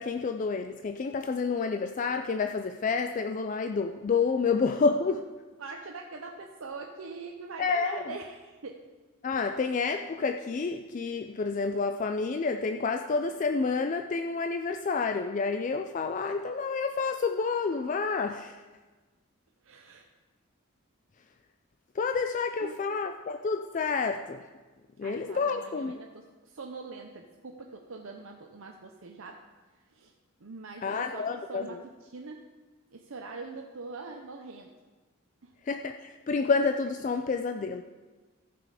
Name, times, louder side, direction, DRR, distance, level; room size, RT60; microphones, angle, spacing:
voice 1, 0.0-5.3 7.6-8.2 9.2-18.6 22.0-24.4 25.0-26.0 30.8-31.8 35.7-37.8, left 4 dB, 35° left, 6 dB, 0.3 m, -29 dB
voice 2, 5.6-8.8 19.6-20.1 22.4-22.8 25.0-29.4 29.9-30.1 30.4-32.4 32.9-34.7 35.4-35.5, right 3 dB, 75° right, 2 dB, 0.7 m, -43 dB
14.0 x 6.1 x 4.9 m, 1.3 s
head